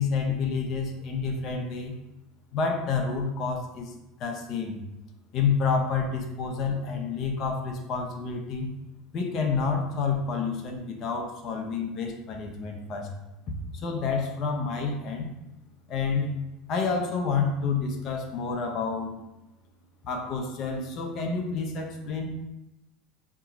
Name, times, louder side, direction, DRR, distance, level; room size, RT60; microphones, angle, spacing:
voice 1, 0.0-2.0 2.5-3.9 4.2-4.8 5.3-8.7 9.1-13.1 13.7-15.3 15.9-16.3 16.7-19.1 20.0-22.3, left 5 dB, 50° left, 2 dB, 0.6 m, -29 dB
2.9 x 2.3 x 3.8 m, 0.96 s
hypercardioid pair, 100°, 0 cm